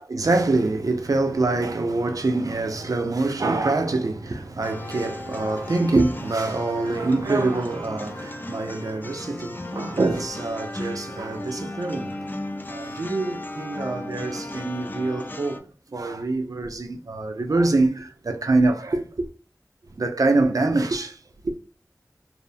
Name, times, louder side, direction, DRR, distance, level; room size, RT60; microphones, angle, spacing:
voice 1, 0.0-12.3 12.7-15.7 15.9-19.3 19.9-21.2 21.4-21.5, right 2 dB, 60° right, 0.4 m, -25 dB
sound 1, 4.6-15.6, left 1 dB, 30° left, 0.4 m, -36 dB
2.6 x 2.1 x 2.6 m
wide cardioid pair, 55°, 7 cm